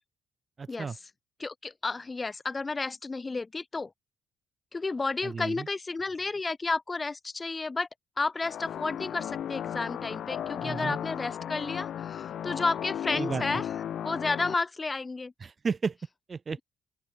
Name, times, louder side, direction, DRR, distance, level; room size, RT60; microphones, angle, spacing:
voice 1, 0.6-1.0 5.2-5.7 10.6-11.0 13.1-13.6 15.4-16.0 16.3-16.6, right 5 dB, 35° right, 1.0 m, -33 dB
voice 2, 1.4-3.9 4.7-7.9 8.2-13.6 14.0-15.3, left 3 dB, 25° left, 0.7 m, -32 dB
sound 1, 8.4-14.5, left 10 dB, 65° left, 0.4 m, -35 dB
open air
cardioid pair, 90°, 0 cm